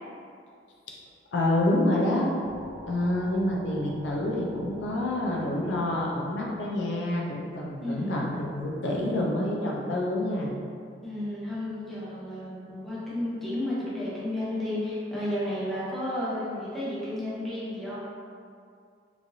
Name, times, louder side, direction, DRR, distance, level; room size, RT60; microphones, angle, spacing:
voice 1, 1.3-2.3 2.9-10.5, left 1 dB, 80° left, -2 dB, 0.5 m, -27 dB
sound 1, 2.4-7.8, equal, 75° right, 0.5 m, -47 dB
voice 2, 7.8-8.2 11.0-18.0, left 1 dB, ahead, -10 dB, 0.7 m, -32 dB
3.1 x 2.4 x 2.6 m, 2.3 s
head